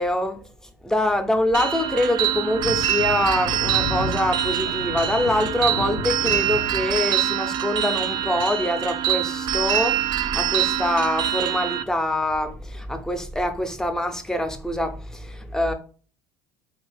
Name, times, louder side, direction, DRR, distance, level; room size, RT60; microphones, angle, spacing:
voice 1, 0.0-15.7, left 1 dB, 5° left, 0.6 m, -25 dB
Thunder, 1.3-10.4, left 2 dB, 75° left, 0.6 m, -35 dB
sound 1, 1.5-11.8, right 12 dB, 50° right, 0.4 m, -25 dB
2.8 x 2.6 x 3.4 m
hypercardioid pair, 70°, 10 cm